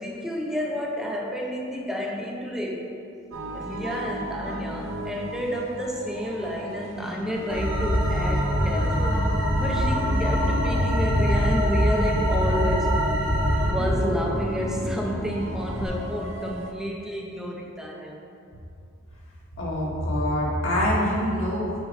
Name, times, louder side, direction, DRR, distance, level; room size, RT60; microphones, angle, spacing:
voice 1, 0.0-2.9 3.5-9.2 9.6-13.0 13.6-18.2, equal, 5° right, -1 dB, 0.5 m, -30 dB
sound 1, 3.3-16.7, right 1 dB, 70° right, 0.7 m, -36 dB
sound 2, 7.5-13.7, equal, 25° right, 1.5 m, -23 dB
Bass guitar, 8.7-12.2 12.9-13.4 13.7-15.9, equal, 25° left, 1.6 m, -32 dB
voice 2, 19.6-21.8, equal, 75° left, -5 dB, 1.8 m, -25 dB
6.3 x 5.0 x 4.9 m, 2.5 s
head